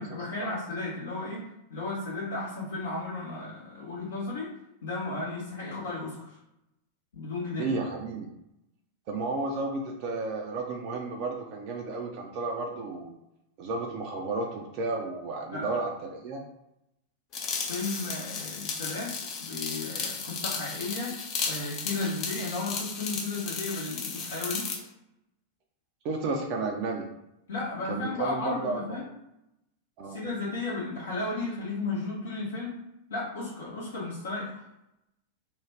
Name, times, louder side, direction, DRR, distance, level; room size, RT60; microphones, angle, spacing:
voice 1, 0.0-1.4 1.7-4.5 4.8-6.4 7.1-7.7 15.5-15.8 17.7-19.1 19.4-21.1 21.5-24.7 27.5-29.0 30.1-32.8 33.1-34.6, left 3 dB, 65° left, -8 dB, 0.8 m, -34 dB
voice 2, 7.6-8.3 9.1-13.1 13.6-16.4 26.0-27.1 27.9-29.0 30.0-30.2, right 3 dB, 45° right, 0 dB, 0.4 m, -32 dB
sound 1, 17.3-24.8, left 5 dB, 35° left, 0.6 m, -35 dB
2.4 x 2.2 x 3.2 m, 0.87 s
figure-of-eight pair, 90°, 0 cm